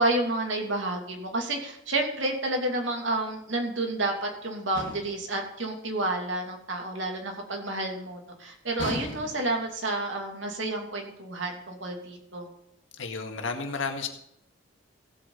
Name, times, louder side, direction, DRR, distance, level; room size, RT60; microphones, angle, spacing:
voice 1, 0.0-12.5, right 2 dB, 75° right, 2 dB, 2.7 m, -30 dB
sound 1, 4.8-5.3 8.8-9.6, left 1 dB, 70° left, 2.3 m, -36 dB
voice 2, 12.9-14.1, left 4 dB, 85° left, 4 dB, 1.9 m, -32 dB
16.0 x 8.3 x 4.0 m, 0.80 s
head